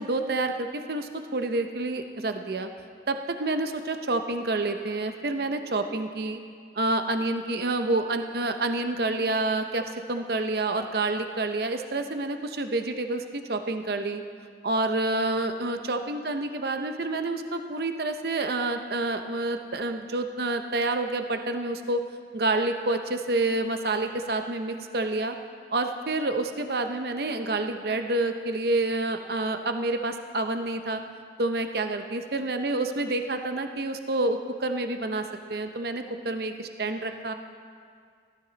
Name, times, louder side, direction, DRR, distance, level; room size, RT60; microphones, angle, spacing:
voice 1, 0.0-2.7 3.1-6.4 6.8-14.2 14.6-22.0 22.3-25.4 25.7-31.0 31.4-35.2 35.5-37.3, right 2 dB, 55° right, 7 dB, 0.6 m, -28 dB
16.5 x 12.0 x 4.0 m, 2.1 s
head